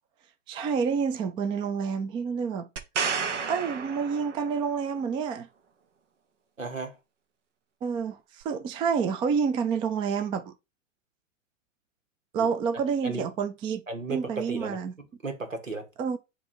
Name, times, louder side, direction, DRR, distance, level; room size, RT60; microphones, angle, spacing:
voice 1, 0.5-2.7 3.5-5.5 7.8-10.5 12.3-14.9 16.0-16.2, right 6 dB, 15° right, 0.4 m, -28 dB
sound 1, 2.8-4.7 8.4-8.5, right 6 dB, 65° right, 1.1 m, -31 dB
voice 2, 6.6-7.0 12.4-12.5 13.0-13.2 13.9-14.8 15.2-15.9, right 3 dB, 90° right, 1.4 m, -34 dB
7.3 x 2.8 x 5.2 m
figure-of-eight pair, 105°, 38 cm